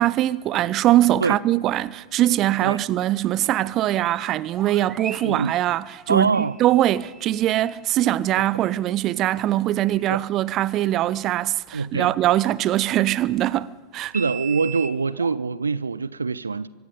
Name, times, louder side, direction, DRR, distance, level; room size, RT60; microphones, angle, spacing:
voice 1, 0.0-14.1, right 14 dB, 35° right, 0.6 m, -22 dB
sound 1, 3.9-7.8 8.6-8.7 9.9-10.0 14.1-15.3, right 8 dB, 20° right, 1.4 m, -39 dB
voice 2, 6.1-6.5 8.4-8.5 10.1-10.2 11.7-12.1 14.1-16.7, right 4 dB, 75° right, 0.5 m, -24 dB
24.5 x 21.5 x 5.2 m
figure-of-eight pair, 90°, 0 cm